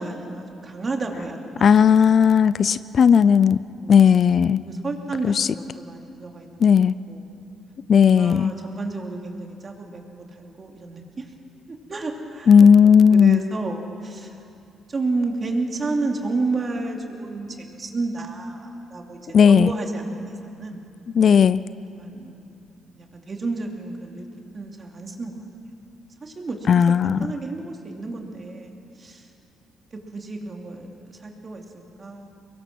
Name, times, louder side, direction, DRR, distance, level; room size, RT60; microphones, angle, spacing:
voice 1, 0.0-1.7 3.8-4.1 4.6-6.6 7.1-7.3 7.9-10.0 10.4-11.3 11.7-14.3 14.9-19.2 19.5-20.8 22.0-24.3 24.5-25.4 26.2-26.6 27.0-29.2 30.1-32.3, right 3 dB, 35° right, 2 dB, 2.8 m, -31 dB
voice 2, 1.6-3.6 3.9-4.6 5.3-5.5 6.6-7.0 7.9-8.5 12.5-13.4 19.3-19.7 21.2-21.6 26.7-27.2, left 7 dB, 55° left, 17 dB, 0.4 m, -15 dB
24.0 x 21.5 x 6.2 m, 2.6 s
cardioid pair, 90°, 0 cm